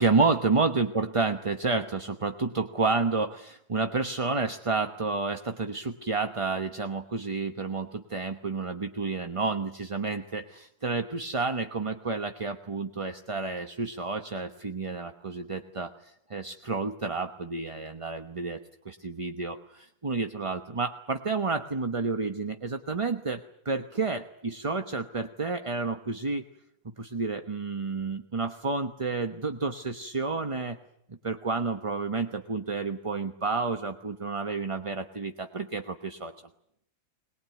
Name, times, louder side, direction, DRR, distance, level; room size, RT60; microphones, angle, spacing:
voice 1, 0.0-18.6 18.8-26.4 27.0-30.8 31.1-36.3, right 4 dB, 25° right, 7 dB, 0.9 m, -30 dB
22.5 x 21.0 x 9.4 m, 0.74 s
omnidirectional pair, 1.7 m